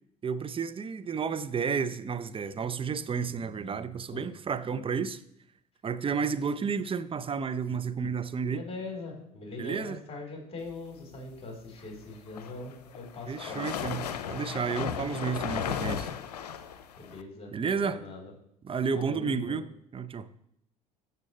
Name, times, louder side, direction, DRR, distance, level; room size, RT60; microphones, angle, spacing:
voice 1, 0.2-5.2 5.8-8.6 9.6-10.0 13.3-16.1 17.5-18.0 18.6-19.7 19.9-20.3, right 6 dB, 25° right, 0.7 m, -31 dB
voice 2, 8.4-13.8 17.0-18.3 19.0-19.7, left 3 dB, 30° left, 4.1 m, -42 dB
sound 1, 12.1-17.2, left 8 dB, 85° left, 0.6 m, -35 dB
13.5 x 6.7 x 3.3 m
hypercardioid pair, 65°, 20 cm